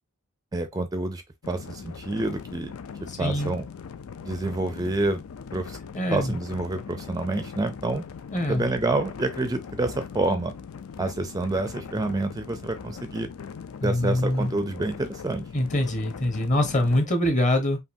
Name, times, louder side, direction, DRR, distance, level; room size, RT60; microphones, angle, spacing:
voice 1, 0.5-2.7 3.2-3.6 4.2-5.2 5.5-5.8 6.1-8.0 8.5-10.5 11.0-13.3 13.8-15.4, right 2 dB, 20° right, 0.4 m, -28 dB
sound 1, 1.4-17.1, left 6 dB, 80° left, 0.4 m, -40 dB
voice 2, 3.1-3.5 5.9-6.4 8.3-8.7 13.8-14.5 15.5-17.8, left 1 dB, 35° left, 1.1 m, -24 dB
5.2 x 2.7 x 2.7 m
head